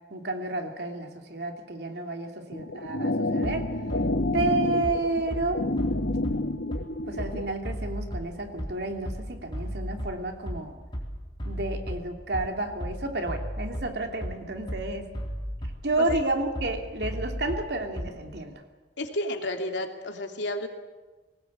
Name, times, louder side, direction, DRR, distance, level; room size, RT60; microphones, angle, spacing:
voice 1, 0.1-3.6 4.3-5.6 7.1-10.8 11.4-15.1 15.8-18.6, right 2 dB, 65° right, 4 dB, 2.8 m, -31 dB
sound 1, 2.5-7.5, left 2 dB, 70° left, 1.2 m, -29 dB
Bass drum, 3.4-18.4, equal, 25° left, 3.8 m, -35 dB
voice 2, 19.0-20.7, left 1 dB, 85° left, 3 dB, 2.8 m, -31 dB
21.5 x 19.0 x 8.6 m, 1.2 s
head